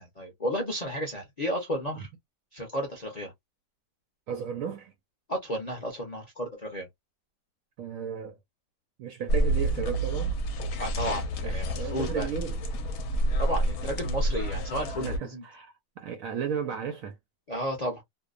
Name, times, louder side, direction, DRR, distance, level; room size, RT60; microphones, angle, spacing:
voice 1, 0.0-2.1 2.5-3.3 5.3-6.9 10.8-12.3 13.4-15.4 17.5-18.0, equal, 45° left, 0.5 m, -33 dB
voice 2, 4.3-4.9 7.8-8.4 9.0-10.4 11.4-12.6 14.9-17.2, right 7 dB, 70° right, 0.8 m, -34 dB
sound 1, 9.3-15.2, right 1 dB, 70° left, 1.0 m, -29 dB
2.7 x 2.1 x 2.4 m
omnidirectional pair, 1.8 m